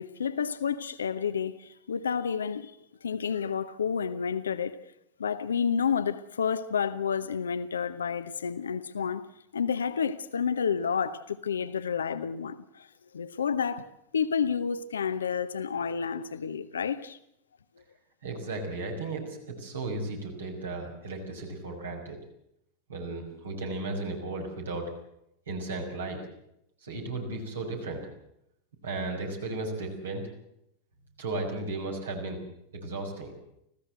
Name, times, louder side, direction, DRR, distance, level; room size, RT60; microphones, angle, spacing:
voice 1, 0.0-2.7 3.0-4.8 5.2-9.3 9.5-12.9 13.1-13.9 14.1-17.2, left 6 dB, 70° left, 1.0 m, -30 dB
voice 2, 18.2-22.2 22.9-24.9 25.5-26.2 26.8-28.1 28.8-30.3 31.2-32.4 32.7-33.3, right 2 dB, 70° right, 6.0 m, -35 dB
25.5 x 16.0 x 8.0 m
figure-of-eight pair, 90°, 0 cm